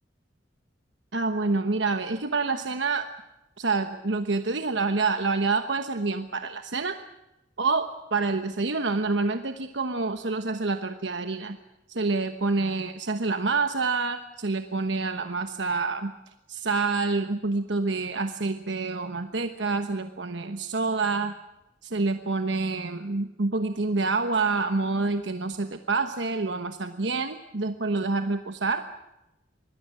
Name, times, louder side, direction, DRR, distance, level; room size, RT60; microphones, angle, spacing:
voice 1, 1.1-3.1 3.6-7.0 7.6-11.6 11.9-16.1 16.5-21.3 21.8-28.8, right 3 dB, 70° right, 8 dB, 1.1 m, -27 dB
25.5 x 20.5 x 7.5 m, 0.95 s
head